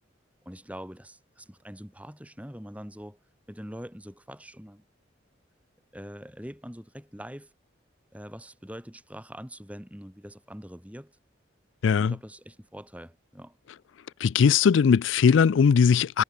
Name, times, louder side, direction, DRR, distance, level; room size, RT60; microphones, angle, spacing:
voice 1, 0.5-3.2 3.5-4.8 5.9-7.5 8.1-11.1 12.0-13.6, equal, 5° right, 5.6 m, -43 dB
voice 2, 11.8-12.1 14.2-16.2, left 6 dB, 75° left, 0.4 m, -19 dB
head